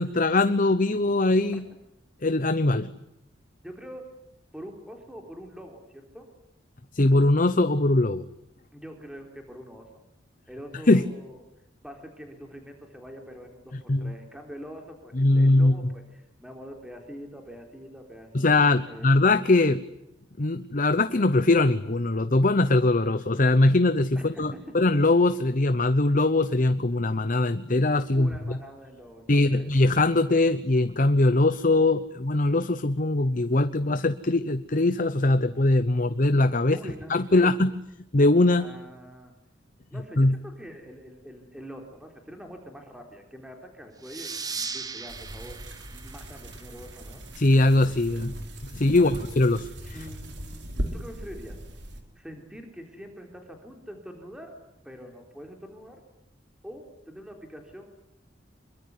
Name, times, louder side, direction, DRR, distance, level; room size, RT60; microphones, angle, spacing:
voice 1, 0.0-1.6 2.2-2.9 6.9-8.3 10.9-11.0 13.9-14.1 15.2-15.9 18.3-19.8 20.4-28.6 29.3-36.8 37.1-37.7 38.1-38.7 40.2-40.4 47.4-48.3 48.7-50.0, left 2 dB, 45° left, 12 dB, 0.9 m, -21 dB
voice 2, 3.6-4.1 4.5-6.3 8.7-10.0 10.5-11.4 11.8-18.6 18.9-19.1 24.2-24.7 28.1-29.7 36.7-37.6 38.5-39.3 39.9-47.3 49.0-49.1 49.9-51.6 52.2-54.5 54.8-56.0 56.6-57.8, equal, 5° right, 3 dB, 3.7 m, -44 dB
sound 1, 44.0-47.3, right 5 dB, 20° right, 1.6 m, -38 dB
sound 2, 45.1-52.0, equal, 65° right, 4.4 m, -38 dB
26.0 x 23.0 x 9.6 m, 0.83 s
head